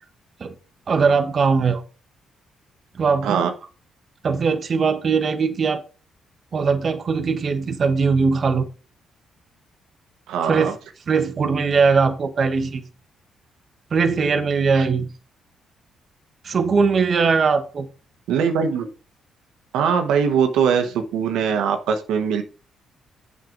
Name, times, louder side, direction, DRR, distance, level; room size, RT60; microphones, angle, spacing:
voice 1, 0.9-1.8 2.9-3.5 4.2-5.9 6.5-8.7 10.4-10.7 11.1-12.9 13.9-15.1 16.4-17.9, right 5 dB, 45° right, 1.1 m, -20 dB
voice 2, 10.3-10.7 14.7-14.9 18.3-18.9 19.7-22.4, right 7 dB, 85° right, 1.1 m, -21 dB
7.8 x 6.6 x 3.9 m
cardioid pair, 90°, 0 cm